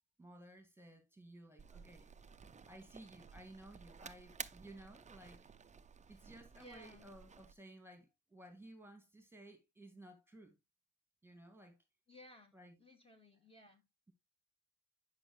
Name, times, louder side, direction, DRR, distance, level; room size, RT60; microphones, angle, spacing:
voice 1, 0.2-2.1 2.7-5.4 6.1-10.6 11.2-11.8 12.5-12.7, right 1 dB, 5° right, 2.4 m, -56 dB
sound 1, 1.6-7.5, right 6 dB, 25° right, 0.6 m, -54 dB
voice 2, 6.5-7.1 12.1-12.5 12.8-13.8, left 1 dB, 20° left, 2.5 m, -58 dB
9.8 x 5.7 x 3.2 m
cardioid pair, 90°, 30 cm